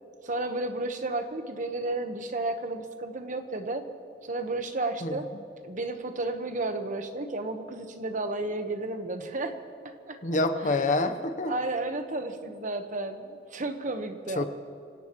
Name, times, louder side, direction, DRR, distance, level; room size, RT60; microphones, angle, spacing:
voice 1, 0.2-3.8 4.3-5.3 5.6-9.5 10.1-10.2 10.6-10.9 11.5-14.4, right 2 dB, 45° right, 7 dB, 1.1 m, -32 dB
voice 2, 10.2-11.5 14.4-14.5, left 2 dB, 45° left, 8 dB, 0.9 m, -26 dB
27.0 x 17.5 x 3.1 m, 2.4 s
head